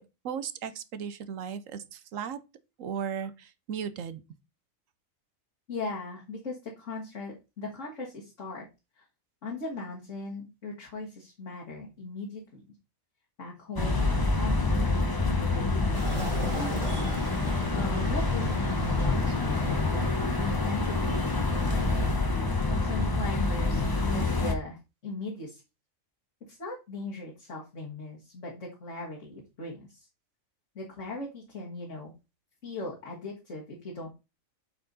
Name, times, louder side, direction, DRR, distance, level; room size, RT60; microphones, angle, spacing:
voice 1, 0.0-2.4 2.8-4.2, right 7 dB, 75° right, 1.1 m, -36 dB
voice 2, 5.7-8.7 9.0-9.1 9.4-12.6 13.4-15.9 16.1-16.9 17.3-21.2 21.5-21.8 22.8-25.6 26.5-30.1 30.8-32.1 32.6-34.1, left 2 dB, 65° left, 2.1 m, -39 dB
sound 1, 13.8-24.5, left 3 dB, 20° left, 0.8 m, -27 dB
sound 2, 15.9-22.2, right 1 dB, 20° right, 1.9 m, -39 dB
8.2 x 4.5 x 4.0 m
omnidirectional pair, 1.4 m